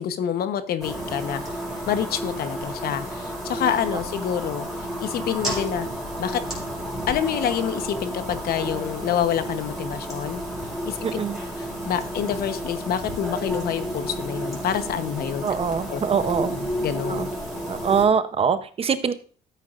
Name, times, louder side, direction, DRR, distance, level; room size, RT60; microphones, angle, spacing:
voice 1, 0.0-1.4 1.9-4.7 5.0-5.9 6.2-6.4 7.1-10.4 10.9-11.2 11.6-15.5 15.9-16.0 16.5-17.3, left 9 dB, 65° left, 11 dB, 1.0 m, -27 dB
sound 1, 0.8-18.0, equal, ahead, 5.1 m, -32 dB
voice 2, 11.0-11.4 15.4-16.5 17.1-17.3 17.7-19.1, right 6 dB, 35° right, 12 dB, 0.7 m, -23 dB
13.0 x 8.2 x 2.5 m, 0.41 s
cardioid pair, 110°, 17 cm